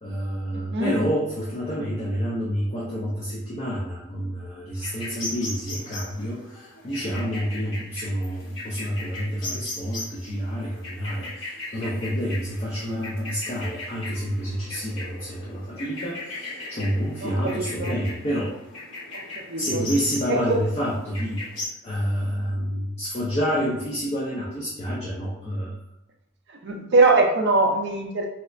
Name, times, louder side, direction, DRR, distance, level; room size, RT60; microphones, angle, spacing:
voice 1, 0.0-18.5 19.5-25.8, equal, 30° left, -5 dB, 0.5 m, -28 dB
voice 2, 0.5-0.9 17.2-17.3 17.6-17.9 19.1-19.8 20.3-20.4 26.6-28.3, right 3 dB, 50° right, 2 dB, 0.5 m, -22 dB
sound 1, 4.8-21.7, left 2 dB, 60° left, 0.9 m, -38 dB
4.1 x 2.0 x 2.4 m, 0.88 s
head